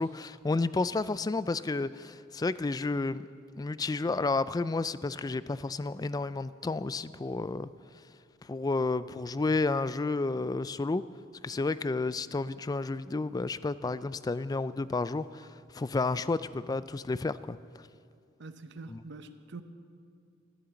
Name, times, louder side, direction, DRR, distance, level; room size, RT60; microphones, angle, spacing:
voice 1, 0.0-3.3 3.6-7.7 8.4-11.0 11.4-17.6 18.9-19.0, left 3 dB, 20° left, 15 dB, 0.3 m, -31 dB
voice 2, 18.4-19.6, right 3 dB, 60° right, 9 dB, 0.8 m, -45 dB
15.5 x 12.0 x 7.0 m, 2.3 s
head